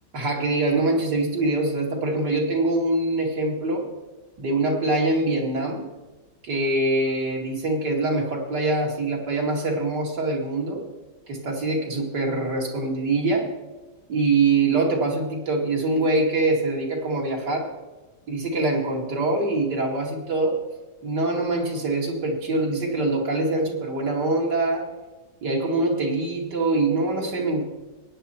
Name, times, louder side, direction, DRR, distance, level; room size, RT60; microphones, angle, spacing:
voice 1, 0.1-3.8 4.4-5.9 6.4-10.8 11.3-13.5 14.1-17.7 18.3-20.6 21.0-24.9 25.4-27.6, right 2 dB, 75° right, -1 dB, 3.1 m, -24 dB
22.0 x 9.5 x 4.4 m, 1.2 s
omnidirectional pair, 1.8 m